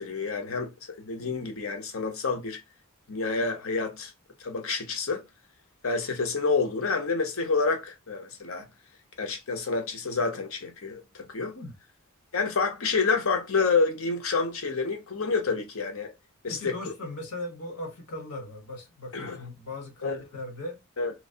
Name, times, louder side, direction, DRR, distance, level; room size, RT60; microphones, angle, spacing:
voice 1, 0.0-2.6 3.1-4.1 4.4-5.2 5.8-8.7 9.2-11.6 12.3-16.1 16.4-16.9 19.1-19.4 20.0-20.2 21.0-21.1, left 4 dB, 65° left, 0.9 m, -28 dB
voice 2, 16.5-20.8, left 1 dB, 80° left, 1.4 m, -38 dB
3.2 x 2.9 x 2.7 m
head